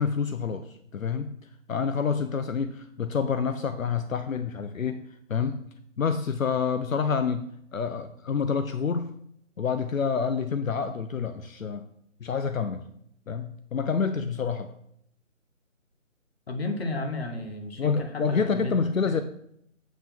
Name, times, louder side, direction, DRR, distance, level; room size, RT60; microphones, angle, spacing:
voice 1, 0.0-1.3 1.7-5.0 5.3-5.6 6.0-9.1 9.6-11.8 12.2-12.9 13.3-14.7 17.8-19.2, left 6 dB, 85° left, 9 dB, 0.7 m, -28 dB
voice 2, 16.5-18.7 19.1-19.2, left 2 dB, 50° left, 4 dB, 1.4 m, -33 dB
7.9 x 7.2 x 2.9 m, 0.70 s
figure-of-eight pair, 165°, 39 cm